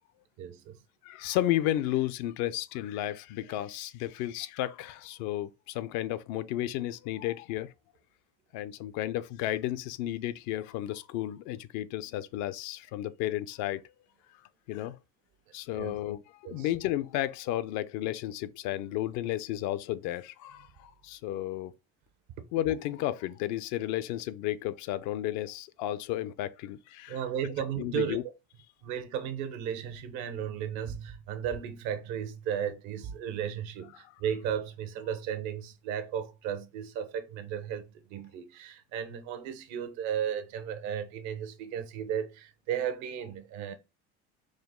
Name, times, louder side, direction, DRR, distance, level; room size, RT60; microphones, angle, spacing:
voice 1, 0.4-0.8 15.8-15.9 16.4-16.7 27.1-28.2 28.8-37.8 38.1-43.7, right 9 dB, 70° right, 0.9 m, -35 dB
voice 2, 1.0-7.7 8.5-13.8 14.7-15.0 15.5-16.2 16.5-21.7 22.5-27.2 27.8-28.2, left 13 dB, 70° left, 0.5 m, -33 dB
5.0 x 2.2 x 3.6 m
supercardioid pair, 95°, 30 cm